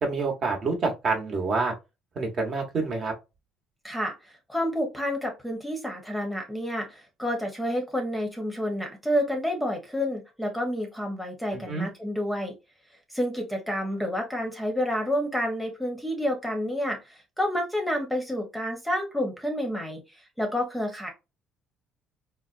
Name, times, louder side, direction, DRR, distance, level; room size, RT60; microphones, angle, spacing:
voice 1, 0.0-1.7 2.1-3.1 11.5-11.9, right 3 dB, 45° right, 1.1 m, -27 dB
voice 2, 3.8-4.1 4.5-12.5 13.1-20.0 20.4-21.1, equal, 5° left, 0.9 m, -29 dB
3.9 x 2.2 x 2.4 m
cardioid pair, 115°, 0 cm